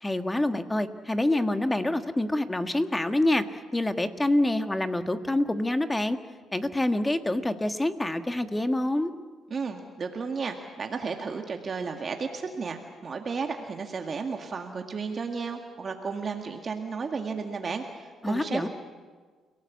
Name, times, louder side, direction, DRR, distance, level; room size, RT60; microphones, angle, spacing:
voice 1, 0.0-3.4 3.7-6.2 6.5-9.1 18.2-18.7, left 1 dB, 15° left, 8 dB, 1.5 m, -26 dB
voice 2, 9.5-18.7, right 5 dB, 45° right, 4 dB, 1.9 m, -33 dB
29.5 x 17.5 x 8.4 m, 1.5 s
cardioid pair, 90°, 0 cm